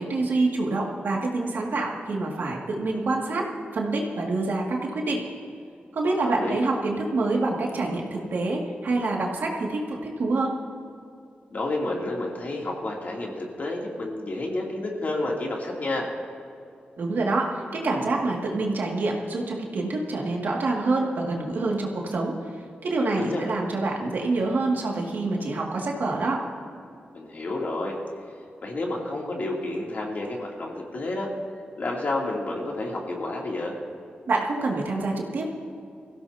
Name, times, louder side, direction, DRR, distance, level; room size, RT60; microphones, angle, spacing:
voice 1, 0.0-3.5 3.7-5.2 5.9-10.5 17.0-22.4 22.8-26.4 34.3-35.5, right 2 dB, 70° right, -1 dB, 2.2 m, -26 dB
voice 2, 6.2-6.6 11.5-16.1 23.1-23.4 27.1-28.0 28.6-31.3 31.8-33.7, left 2 dB, 55° left, -2 dB, 2.9 m, -30 dB
23.5 x 16.0 x 2.8 m, 2.4 s
wide cardioid pair, 105°, 3 cm